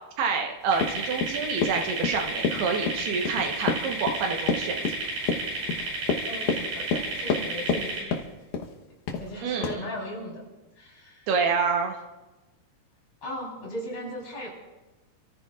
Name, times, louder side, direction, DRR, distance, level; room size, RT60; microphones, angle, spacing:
voice 1, 0.2-4.7 9.4-9.7 11.3-11.9, right 5 dB, 80° right, 3 dB, 3.1 m, -27 dB
Run, 0.7-7.8 8.1-8.7 9.1-9.3 9.6-9.8, left 5 dB, 70° left, 2.0 m, -28 dB
sound 1, 0.7-8.0, right 2 dB, 60° right, 7.5 m, -32 dB
voice 2, 6.3-8.1 9.2-10.4 10.8-11.3 13.2-14.5, equal, 35° left, -3 dB, 4.9 m, -37 dB
28.0 x 14.0 x 2.4 m, 1.1 s
omnidirectional pair, 4.7 m